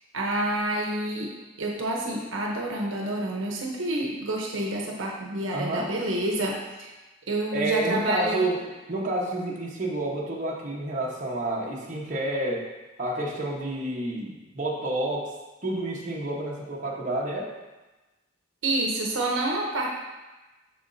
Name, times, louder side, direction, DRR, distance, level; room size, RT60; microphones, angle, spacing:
voice 1, 0.1-1.3 1.6-6.9 7.3-8.4 18.6-19.9, right 1 dB, 75° right, -1 dB, 0.9 m, -28 dB
voice 2, 5.5-5.9 7.5-8.6 8.9-12.7 13.0-15.3 15.6-17.5, right 1 dB, 40° right, -3 dB, 1.0 m, -29 dB
7.0 x 6.5 x 2.6 m, 1.1 s
head